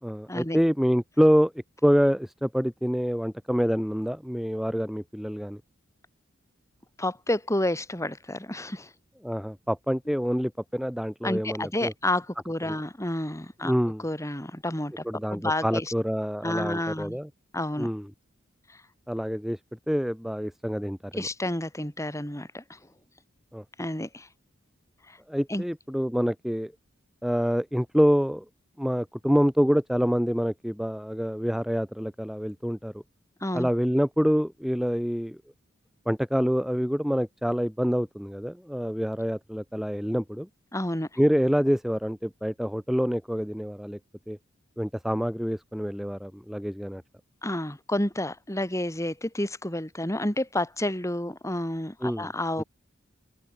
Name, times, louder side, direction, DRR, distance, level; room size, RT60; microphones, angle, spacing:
voice 1, 0.0-1.5 1.8-5.6 9.2-11.9 12.7-12.8 13.6-14.0 15.0-17.3 17.8-18.1 19.1-19.6 19.9-21.3 23.5-23.6 25.3-26.7 27.2-28.4 28.8-33.0 33.5-35.4 36.1-40.5 41.2-44.0 44.3-44.4 44.8-47.0 52.0-52.3 52.6-52.7, equal, ahead, 1.9 m, -26 dB
voice 2, 7.0-8.9 10.1-10.2 11.2-13.7 14.0-15.0 15.3-15.9 16.4-17.2 17.5-17.9 21.1-22.8 23.8-24.3 25.1-25.2 25.5-25.6 33.4-33.7 40.7-41.1 47.4-52.6, left 1 dB, 15° left, 4.3 m, -30 dB
head